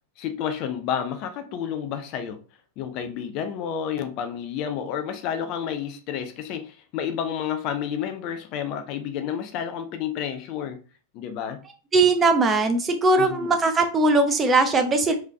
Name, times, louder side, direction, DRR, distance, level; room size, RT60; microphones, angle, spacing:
voice 1, 0.2-2.4 2.8-10.8 11.1-11.6 13.1-13.5, left 8 dB, 40° left, 0.5 m, -30 dB
voice 2, 11.9-15.1, right 3 dB, 20° right, 0.8 m, -20 dB
3.7 x 3.2 x 3.6 m
figure-of-eight pair, 90°, 0 cm